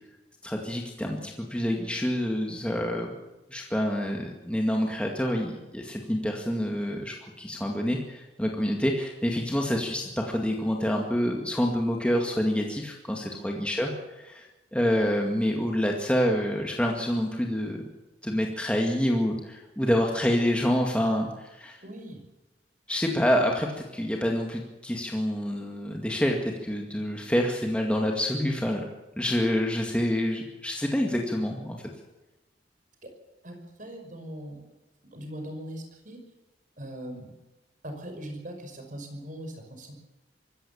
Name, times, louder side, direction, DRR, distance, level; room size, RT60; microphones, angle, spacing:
voice 1, 0.4-3.1 3.5-17.8 18.2-21.8 22.9-28.9 29.2-31.9, equal, 5° left, 0 dB, 2.1 m, -27 dB
voice 2, 21.8-22.2 33.0-33.1 33.4-34.6 35.1-36.2 36.8-37.3 37.8-39.9, right 1 dB, 45° right, 5 dB, 5.5 m, -40 dB
24.0 x 15.0 x 7.2 m, 1.1 s
head